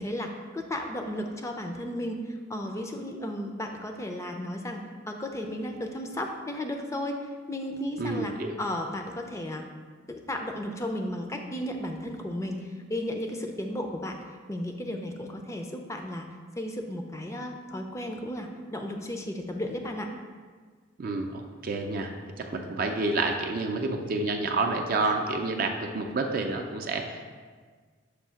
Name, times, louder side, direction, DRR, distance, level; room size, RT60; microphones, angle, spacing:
voice 1, 0.0-4.8 5.1-7.2 7.5-9.6 10.1-14.2 14.5-16.2 16.6-20.1 25.0-25.1, left 1 dB, 15° left, 4 dB, 0.4 m, -34 dB
voice 2, 8.0-8.6 21.0-22.1 22.4-27.0, right 3 dB, 50° right, 3 dB, 0.4 m, -29 dB
6.4 x 2.7 x 5.6 m, 1.5 s
head